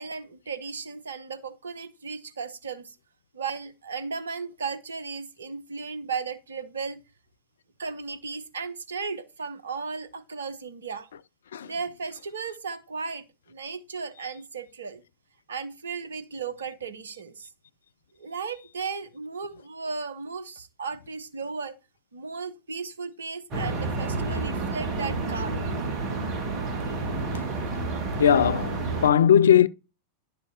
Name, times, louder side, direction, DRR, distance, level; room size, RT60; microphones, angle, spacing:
voice 1, 0.0-2.9 3.3-7.0 7.8-11.1 11.7-15.0 15.5-17.5 18.2-21.7 22.1-25.6, right 5 dB, 70° right, 0.9 m, -35 dB
sound 1, 23.5-29.1, right 3 dB, 35° right, 1.9 m, -30 dB
voice 2, 28.2-29.7, left 9 dB, 65° left, 0.4 m, -19 dB
11.0 x 6.6 x 2.9 m
figure-of-eight pair, 90°, 0 cm